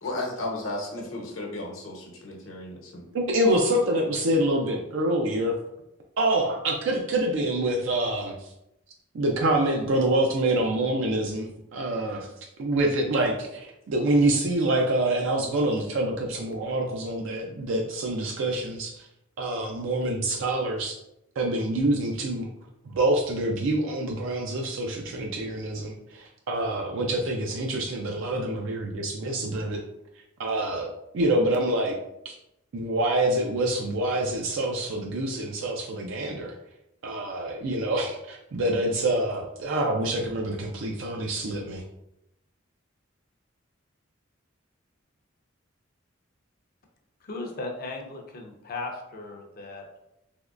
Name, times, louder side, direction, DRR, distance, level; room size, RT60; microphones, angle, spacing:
voice 1, 0.0-3.1, left 2 dB, 75° left, -1 dB, 0.9 m, -34 dB
voice 2, 3.1-5.5 6.2-8.5 9.1-12.3 12.6-19.1 19.4-21.0 21.4-22.5 22.8-29.8 30.4-32.0 32.2-32.3 32.7-36.6 37.0-41.8, right 1 dB, 70° right, 1 dB, 0.4 m, -26 dB
voice 3, 47.2-50.0, left 3 dB, 50° left, 1 dB, 0.5 m, -37 dB
3.5 x 3.0 x 2.4 m, 0.85 s
head